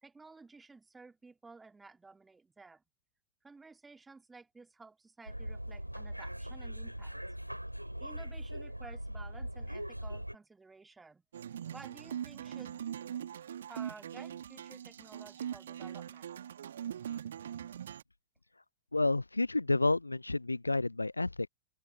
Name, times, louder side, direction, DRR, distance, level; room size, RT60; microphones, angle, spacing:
voice 1, 0.0-2.8 3.4-7.2 8.0-11.2 11.7-12.8 13.7-16.3, right 3 dB, 10° right, 2.6 m, -54 dB
sound 1, 5.3-10.3, equal, 90° right, 2.7 m, -41 dB
sound 2, 11.3-18.0, right 9 dB, 65° right, 1.6 m, -41 dB
voice 2, 18.9-21.5, left 2 dB, 80° left, 0.4 m, -30 dB
open air
figure-of-eight pair, 90°, 0 cm